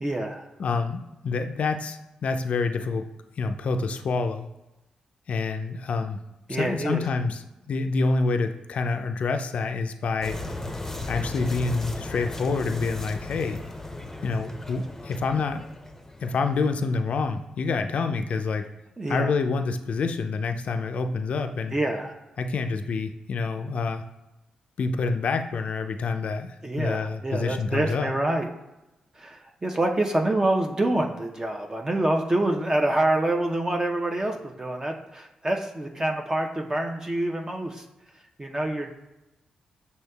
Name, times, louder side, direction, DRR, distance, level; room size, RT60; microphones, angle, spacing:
voice 1, 0.0-0.5 6.5-7.0 19.0-19.3 21.7-22.1 26.6-28.5 29.2-37.8 38.4-38.9, right 1 dB, 25° right, 2 dB, 0.6 m, -26 dB
voice 2, 0.6-3.1 3.4-4.5 5.3-6.2 6.5-10.4 11.1-13.6 14.2-15.6 16.2-18.7 19.1-21.7 22.4-24.0 24.8-28.1, left 4 dB, 60° left, 7 dB, 0.3 m, -27 dB
sound 1, 10.2-16.8, left 2 dB, 15° left, 0.6 m, -36 dB
6.3 x 2.7 x 2.2 m, 0.97 s
supercardioid pair, 45°, 2 cm